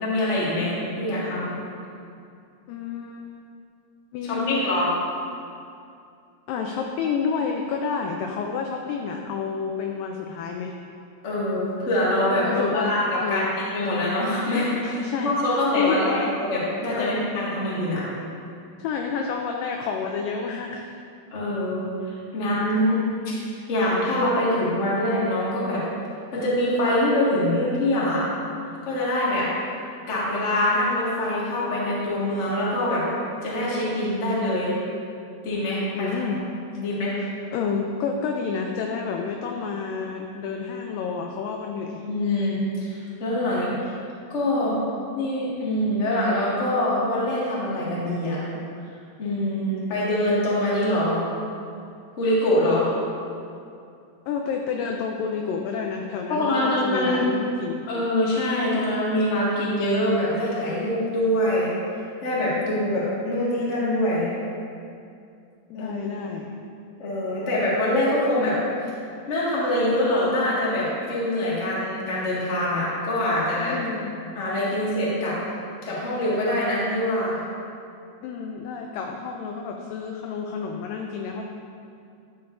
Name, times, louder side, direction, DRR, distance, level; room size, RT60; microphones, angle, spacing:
voice 1, 0.0-1.5 4.2-4.9 11.2-13.0 13.3-18.1 21.3-23.0 23.2-23.3 23.7-25.8 26.3-28.3 28.8-29.5 30.1-33.0 33.4-34.7 35.4-36.3 36.8-37.2 42.1-43.9 44.3-44.8 45.1-48.4 49.2-51.3 52.2-52.9 56.3-57.3 57.9-61.7 62.2-64.3 65.7-66.0 67.0-68.6 69.3-73.8 74.3-75.4 75.8-77.4, left 1 dB, 40° left, -8 dB, 1.0 m, -24 dB
voice 2, 2.7-3.4 4.1-4.6 6.5-10.7 12.4-13.5 14.8-16.3 16.9-17.3 18.8-20.8 22.7-23.2 36.0-36.4 37.2-42.0 54.3-57.8 65.7-66.5 73.7-74.1 75.5-75.6 78.2-81.4, left 5 dB, 85° left, 2 dB, 1.9 m, -29 dB
12.0 x 6.6 x 2.6 m, 2.5 s
omnidirectional pair, 4.5 m